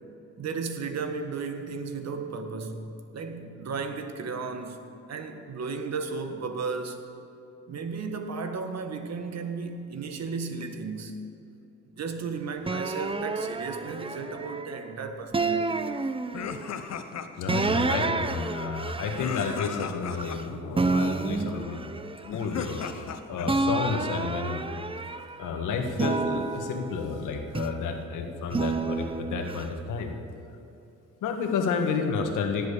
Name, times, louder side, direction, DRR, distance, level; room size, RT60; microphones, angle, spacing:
voice 1, 0.4-2.9 3.1-4.8 5.1-7.1 7.7-11.2 11.8-15.8, right 4 dB, 60° right, 6 dB, 1.7 m, -34 dB
sound 1, 12.6-14.8 15.3-16.7 17.5-20.4 20.7-23.1 23.4-25.5 25.9-27.9 28.5-29.6, right 3 dB, 20° right, 0.7 m, -30 dB
sound 2, 16.3-17.6 19.1-20.4 22.2-23.6, left 7 dB, 60° left, 1.1 m, -36 dB
voice 2, 17.4-21.8 22.3-24.7 25.4-30.1 31.2-32.7, left 5 dB, 85° left, 4 dB, 1.8 m, -31 dB
18.0 x 7.9 x 8.6 m, 2.8 s
cardioid pair, 90°, 30 cm